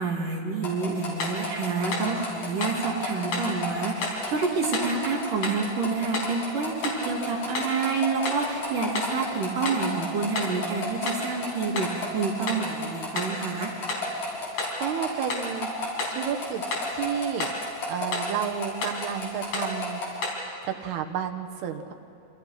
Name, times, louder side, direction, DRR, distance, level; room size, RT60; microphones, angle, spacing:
voice 1, 0.0-13.7, right 4 dB, 55° right, -1 dB, 4.1 m, -28 dB
sound 1, 0.6-20.1, left 3 dB, 50° left, 7.2 m, -33 dB
sound 2, 1.2-1.4 1.9-2.2 2.6-2.8 3.3-3.6 4.0-4.2 4.7-5.0 5.4-5.7 6.1-6.4 6.8-7.1 7.6-7.8 8.3-8.5 9.0-9.2 9.7-9.9 10.4-10.6 11.1-11.3 11.8-12.0 12.5-12.7 13.2-13.4 13.9-14.1 14.6-14.8 15.3-15.5 16.0-16.2 16.7-16.9 17.4-17.6 18.1-18.4 18.8-19.0 19.5-19.8 20.2-20.5, left 2 dB, 70° left, 6.5 m, -32 dB
voice 2, 14.8-15.7 16.1-16.6 16.9-17.5 17.9-20.0 20.6-21.9, right 8 dB, 80° right, 5 dB, 3.4 m, -31 dB
28.0 x 27.5 x 6.0 m, 2.5 s
omnidirectional pair, 4.6 m